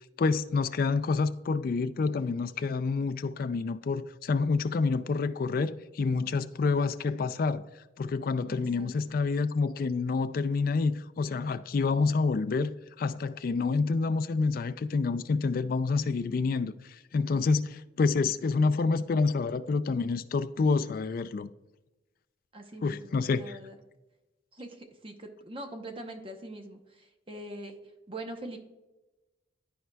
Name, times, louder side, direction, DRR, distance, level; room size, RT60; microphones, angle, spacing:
voice 1, 0.2-7.7 8.0-21.5 22.8-23.6, left 4 dB, 50° left, 0.3 m, -28 dB
voice 2, 8.5-9.2 22.5-23.8 24.5-27.8 28.1-28.6, right 1 dB, 30° right, 0.8 m, -43 dB
12.0 x 4.5 x 2.2 m
head